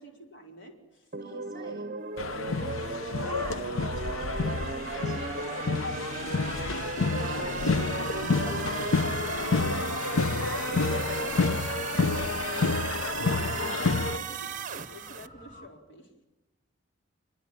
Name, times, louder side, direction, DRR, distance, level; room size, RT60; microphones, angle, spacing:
voice 1, 0.0-1.7 2.7-3.0 7.1-8.6 10.4-11.0 13.9-16.3, left 1 dB, 60° left, 2 dB, 4.3 m, -50 dB
sound 1, 1.1-15.3, right 5 dB, 40° right, 0.9 m, -36 dB
voice 2, 1.2-1.9 2.3-6.6 7.2-10.0 10.3-14.2, equal, 15° left, 2 dB, 6.0 m, -44 dB
sound 2, 2.2-14.2, left 3 dB, 85° left, 0.9 m, -29 dB
sound 3, 5.7-15.7, left 2 dB, 40° left, 2.5 m, -48 dB
27.0 x 22.5 x 8.9 m, 1.1 s
head